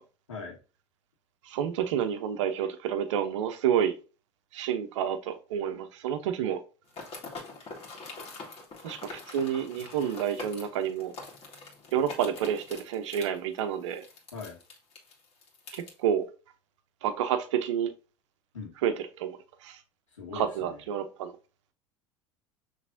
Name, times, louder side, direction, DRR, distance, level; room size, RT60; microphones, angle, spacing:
voice 1, 1.4-3.9 4.5-6.6 8.8-11.1 11.9-14.0 15.7-16.3 17.0-17.9 18.8-19.8 20.3-21.3, right 9 dB, 75° right, 0.8 m, -29 dB
sound 1, 6.9-15.9, left 3 dB, 40° left, 1.9 m, -44 dB
voice 2, 20.1-20.8, left 5 dB, 90° left, 1.6 m, -40 dB
6.0 x 3.3 x 2.6 m
hypercardioid pair, 75°, 16 cm